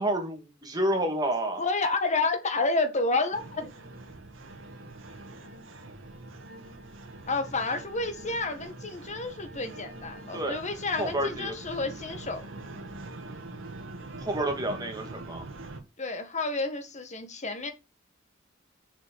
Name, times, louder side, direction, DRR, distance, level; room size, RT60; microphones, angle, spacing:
voice 1, 0.0-1.6 10.3-10.6 11.0-11.5 14.2-15.4, right 1 dB, 20° right, 2.5 m, -29 dB
voice 2, 1.6-3.7 7.3-12.4 16.0-17.7, left 3 dB, 35° left, 1.7 m, -30 dB
sound 1, 3.3-15.8, right 2 dB, 70° right, 2.1 m, -43 dB
7.0 x 6.5 x 6.6 m
head